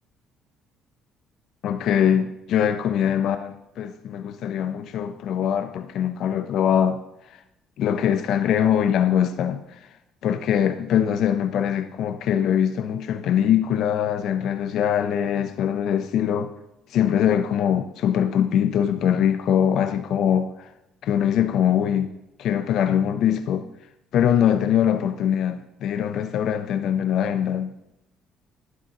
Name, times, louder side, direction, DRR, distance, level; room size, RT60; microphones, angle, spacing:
voice 1, 1.6-7.0 7.8-9.9 10.2-16.5 16.9-20.7 21.0-22.1 22.4-23.7 24.1-27.7, left 9 dB, 65° left, 0.7 m, -22 dB
13.0 x 11.0 x 2.9 m
hypercardioid pair, 60°, 0 cm